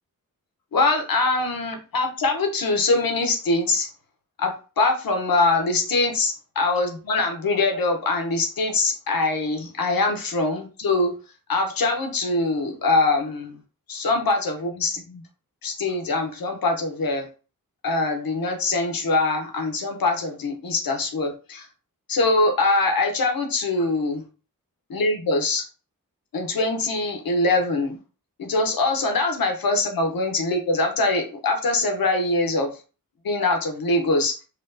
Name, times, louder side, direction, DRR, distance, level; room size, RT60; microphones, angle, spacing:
voice 1, 0.7-3.9 4.4-11.1 11.5-13.6 13.9-15.2 15.6-17.2 17.8-21.7 22.1-24.2 24.9-25.6 26.3-28.0 28.4-32.7 33.2-34.3, left 2 dB, 90° left, 4 dB, 0.8 m, -23 dB
4.3 x 2.2 x 2.6 m, 0.34 s
wide cardioid pair, 70°, 34 cm